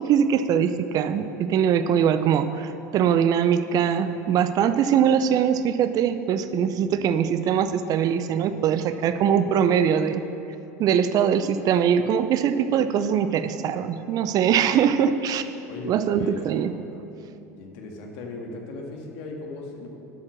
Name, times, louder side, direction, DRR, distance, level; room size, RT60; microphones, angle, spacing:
voice 1, 0.0-10.3 10.8-15.4 15.8-16.7, right 8 dB, 45° right, 11 dB, 0.6 m, -22 dB
voice 2, 15.7-16.6 17.6-19.9, left 3 dB, 60° left, 1 dB, 2.0 m, -37 dB
12.0 x 7.4 x 6.5 m, 2.8 s
hypercardioid pair, 80°, 9 cm